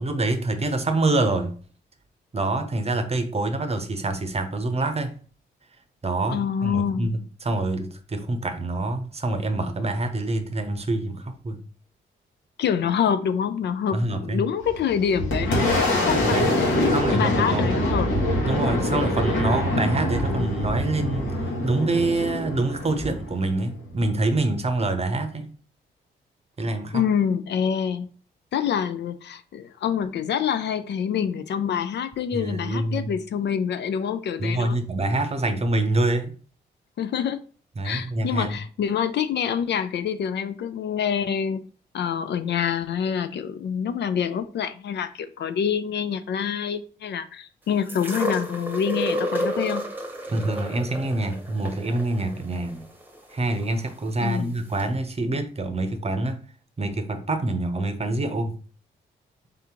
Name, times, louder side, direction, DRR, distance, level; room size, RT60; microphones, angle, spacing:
voice 1, 0.0-1.6 2.3-5.2 6.0-11.6 13.9-14.4 16.2-16.5 16.9-17.8 18.4-25.5 26.6-27.1 32.3-33.1 34.4-36.4 37.8-38.6 50.3-52.9 53.3-56.4 56.8-58.6, right 2 dB, 30° right, 0.7 m, -26 dB
voice 2, 6.3-7.1 12.6-18.1 26.9-28.1 28.5-34.8 37.0-37.4 37.8-41.6 41.9-49.9 54.2-54.6, left 8 dB, 60° left, 0.4 m, -26 dB
Boom, 14.6-24.0, left 1 dB, 80° left, 1.4 m, -25 dB
sound 1, 47.9-53.9 54.8-54.9, equal, 10° right, 1.0 m, -31 dB
3.7 x 2.8 x 3.7 m
supercardioid pair, 55°, 20 cm